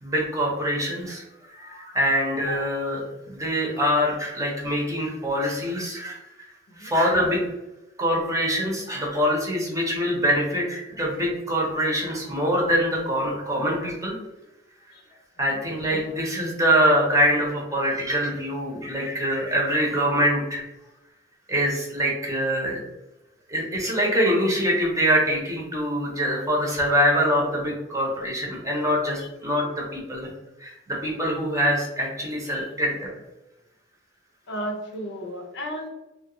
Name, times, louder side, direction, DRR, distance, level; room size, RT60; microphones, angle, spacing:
voice 1, 0.0-1.2 1.5-6.5 6.8-7.4 8.0-14.2 15.4-20.7 21.5-22.8 23.5-30.3 30.6-33.1, equal, 15° right, -2 dB, 0.8 m, -24 dB
voice 2, 34.5-35.9, equal, 65° left, 2 dB, 0.6 m, -34 dB
3.1 x 2.4 x 3.0 m, 0.97 s
head